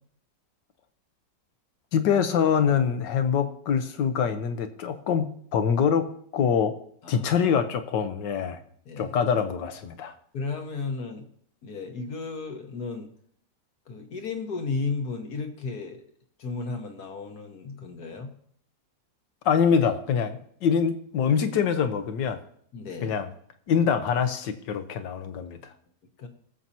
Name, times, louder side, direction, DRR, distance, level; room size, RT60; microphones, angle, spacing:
voice 1, 1.9-6.7 7.1-8.6 9.0-10.1 19.4-22.4 23.0-23.3 23.7-25.6, left 7 dB, 80° left, 9 dB, 1.6 m, -24 dB
voice 2, 10.3-11.3 11.6-13.1 13.9-16.0 16.4-18.3 22.7-23.2 26.2-26.3, left 4 dB, 60° left, 4 dB, 1.7 m, -34 dB
22.0 x 7.6 x 2.8 m, 0.63 s
omnidirectional pair, 1.9 m